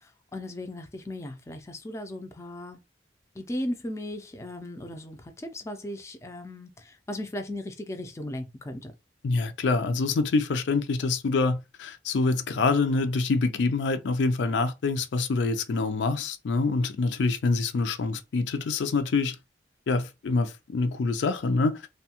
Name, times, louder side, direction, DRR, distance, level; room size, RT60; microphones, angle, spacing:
voice 1, 0.0-2.8 3.4-8.9, left 1 dB, 15° left, 0.3 m, -37 dB
voice 2, 9.2-19.4 19.9-21.8, left 3 dB, 85° left, 0.4 m, -26 dB
2.7 x 2.2 x 2.8 m
head